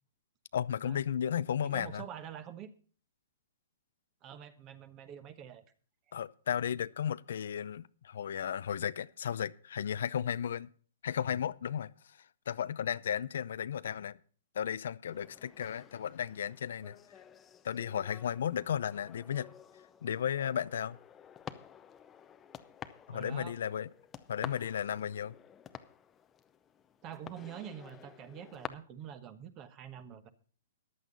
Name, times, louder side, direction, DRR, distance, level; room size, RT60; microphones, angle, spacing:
voice 1, 0.5-2.1 6.1-10.7 11.0-11.9 12.5-14.2 14.5-17.0 17.6-19.5 20.0-21.0 23.1-23.9 24.3-25.3, left 9 dB, 70° left, 0.6 m, -34 dB
voice 2, 1.6-2.7 4.2-5.6 23.1-23.6 27.0-30.3, right 9 dB, 25° right, 1.2 m, -46 dB
sound 1, 15.1-28.7, left 8 dB, 15° left, 0.7 m, -51 dB
14.0 x 11.0 x 4.0 m
hypercardioid pair, 160°, 0 cm